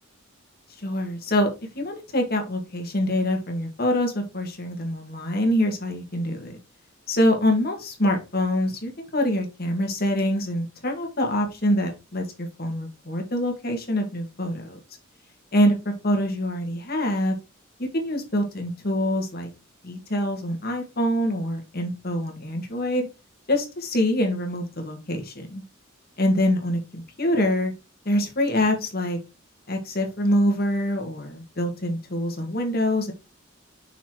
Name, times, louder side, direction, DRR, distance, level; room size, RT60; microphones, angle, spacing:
voice 1, 0.8-1.5 1.8-6.6 7.1-14.8 15.5-17.4 17.9-19.5 19.8-23.1 23.5-25.6 26.2-27.7 28.1-29.2 29.7-33.1, left 1 dB, 50° left, 4 dB, 1.8 m, -25 dB
5.8 x 4.1 x 4.5 m, 0.28 s
head